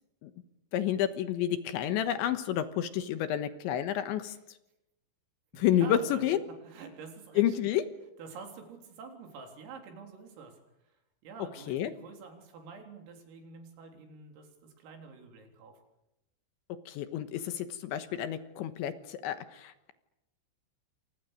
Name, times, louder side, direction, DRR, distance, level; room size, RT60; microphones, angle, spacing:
voice 1, 0.7-4.3 5.5-6.4 7.4-7.8 11.7-11.9 16.9-19.9, left 11 dB, 75° left, 10 dB, 3.3 m, -30 dB
voice 2, 5.5-7.6 8.2-10.6 11.2-15.8, right 5 dB, 80° right, 3 dB, 6.4 m, -48 dB
29.0 x 27.0 x 6.7 m, 0.89 s
omnidirectional pair, 5.9 m